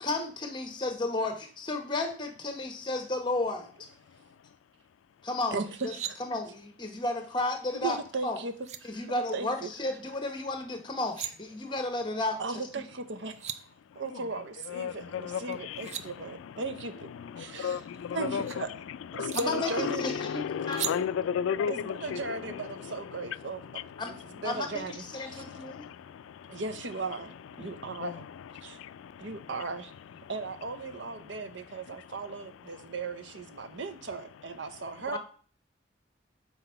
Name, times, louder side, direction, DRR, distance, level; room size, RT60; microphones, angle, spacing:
voice 1, 0.0-3.7 5.2-5.9 6.2-8.4 8.8-12.6 19.3-20.8 24.0-24.2 24.4-25.8 27.6-27.7 35.1-35.2, left 2 dB, 25° left, 0.9 m, -33 dB
sound 1, 5.6-6.1 8.2-8.3 8.6-8.8 10.9-11.3 13.0-13.1 13.2-13.6 15.5-16.0 17.5-18.6 19.3-19.4 20.7-20.9, right 10 dB, 35° right, 0.3 m, -37 dB
voice 2, 7.7-8.5 9.1-9.7 12.4-13.4 14.0-17.1 17.4-17.8 18.1-18.8 19.1-20.0 21.7-25.4 26.5-28.2 28.6-28.8 29.2-29.9 30.3-35.2, right 3 dB, 70° right, 0.7 m, -37 dB
voice 3, 20.8-21.7, left 7 dB, 90° left, 0.3 m, -28 dB
5.9 x 4.3 x 5.5 m
head